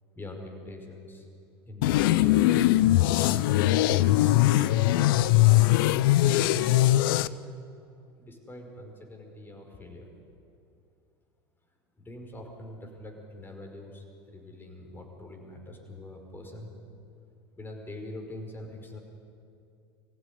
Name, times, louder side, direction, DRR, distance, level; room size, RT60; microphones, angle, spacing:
voice 1, 0.2-1.3 1.7-2.5 8.2-10.1 11.9-16.7 17.6-19.0, left 1 dB, 15° left, 2 dB, 5.4 m, -43 dB
sound 1, 1.8-7.3, left 15 dB, 60° left, 0.7 m, -21 dB
24.5 x 15.5 x 9.8 m, 2.6 s
figure-of-eight pair, 80°, 13 cm